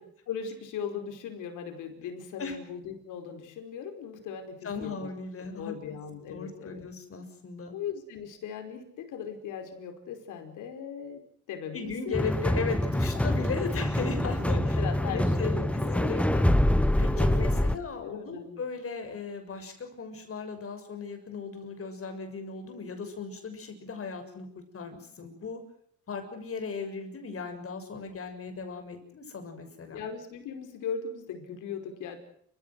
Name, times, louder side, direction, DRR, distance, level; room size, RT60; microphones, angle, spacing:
voice 1, 0.3-5.1 5.6-6.9 7.7-11.2 11.5-12.3 13.1-13.2 14.5-16.5 17.1-18.6 29.9-32.2, left 7 dB, 85° left, 6 dB, 5.2 m, -38 dB
voice 2, 4.6-5.7 6.3-7.7 11.7-14.6 15.0-15.6 16.0-16.3 17.0-24.5 24.7-25.6 26.1-30.0, left 4 dB, 50° left, 7 dB, 6.8 m, -37 dB
sound 1, 12.1-17.8, left 1 dB, 5° left, 1.2 m, -25 dB
29.0 x 16.0 x 7.8 m, 0.66 s
cardioid pair, 90°, 30 cm